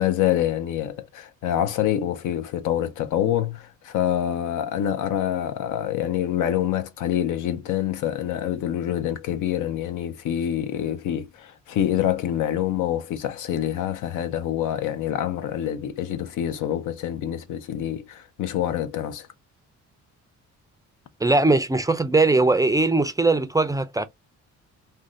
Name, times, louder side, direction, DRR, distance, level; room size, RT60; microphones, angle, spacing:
voice 1, 0.0-19.3, left 11 dB, 85° left, 0.6 m, -26 dB
voice 2, 21.2-24.1, right 3 dB, 10° right, 0.3 m, -20 dB
2.5 x 2.2 x 3.6 m
cardioid pair, 90°, 30 cm